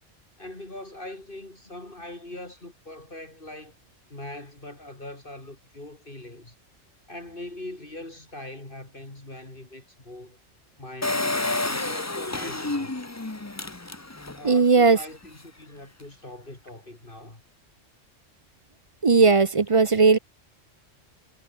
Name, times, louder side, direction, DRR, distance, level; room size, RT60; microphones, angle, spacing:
voice 1, 0.4-3.7 4.1-6.6 7.1-10.4 10.8-13.0 14.3-17.4, left 1 dB, 45° left, 4.1 m, -41 dB
Engine, 11.0-14.5 15.0-15.1 15.2-15.3, left 2 dB, 15° left, 0.9 m, -29 dB
voice 2, 14.4-15.0 19.0-20.2, right 4 dB, 35° right, 0.6 m, -17 dB
omnidirectional pair, 1.3 m